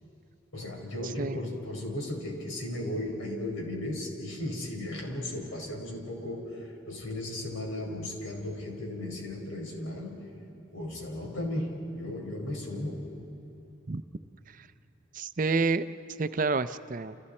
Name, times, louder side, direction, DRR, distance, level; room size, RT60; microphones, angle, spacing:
voice 1, 0.5-10.3 10.7-13.1, left 1 dB, 90° left, 1 dB, 4.7 m, -35 dB
voice 2, 15.1-15.9 16.2-17.2, right 4 dB, 40° right, 12 dB, 0.5 m, -29 dB
29.5 x 29.0 x 4.3 m, 2.8 s
head